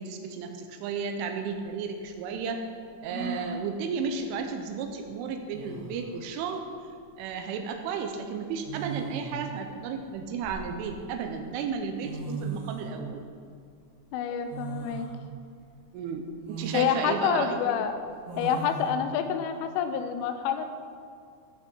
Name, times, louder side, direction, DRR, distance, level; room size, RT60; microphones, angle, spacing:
voice 1, 0.0-2.6 3.0-6.6 7.2-13.2 15.9-17.6, right 5 dB, 80° right, 5 dB, 3.2 m, -33 dB
sound 1, 3.1-3.6 5.1-5.2 5.5-6.0 7.3-7.6 8.6-9.4 10.1-11.1 11.8-11.9 12.0-12.9 14.5-15.1 15.6-15.7 16.4-16.9 18.3-18.9, right 4 dB, 60° right, 3.3 m, -37 dB
voice 2, 14.1-15.1 16.7-17.9 18.4-20.7, left 8 dB, 85° left, 8 dB, 3.1 m, -27 dB
14.0 x 6.4 x 5.5 m, 2.2 s
omnidirectional pair, 5.7 m